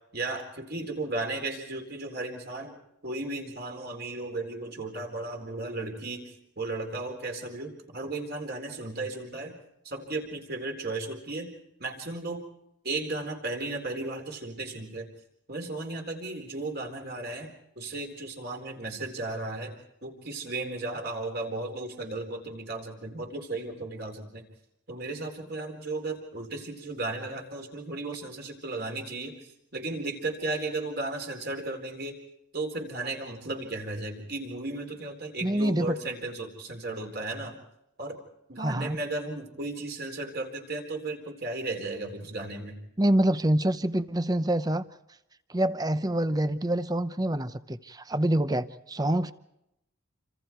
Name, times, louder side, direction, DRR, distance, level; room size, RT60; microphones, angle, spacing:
voice 1, 0.1-2.7 3.0-9.6 9.8-11.5 11.8-12.4 12.8-15.1 15.5-17.5 17.8-24.4 24.9-29.4 29.7-32.2 32.5-37.6 38.0-38.2 38.5-42.8, right 2 dB, 45° right, 3 dB, 4.2 m, -35 dB
voice 2, 35.4-36.0 38.6-39.0 43.0-44.8 45.5-49.3, right 1 dB, 15° right, 13 dB, 0.8 m, -26 dB
28.0 x 26.5 x 4.6 m, 0.83 s
head